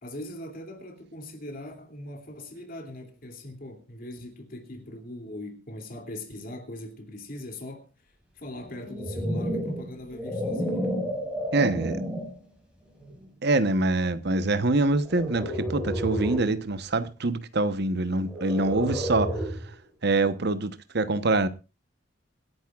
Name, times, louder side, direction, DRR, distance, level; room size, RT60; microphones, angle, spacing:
voice 1, 0.0-11.0, left 1 dB, 50° left, 2.7 m, -41 dB
sound 1, 8.7-12.4 13.0-13.3 15.1-16.6 18.3-19.7, equal, 5° right, 5.6 m, -31 dB
voice 2, 11.5-12.0 13.4-19.3 20.0-21.5, right 2 dB, 60° right, 1.0 m, -25 dB
26.5 x 10.5 x 2.4 m
head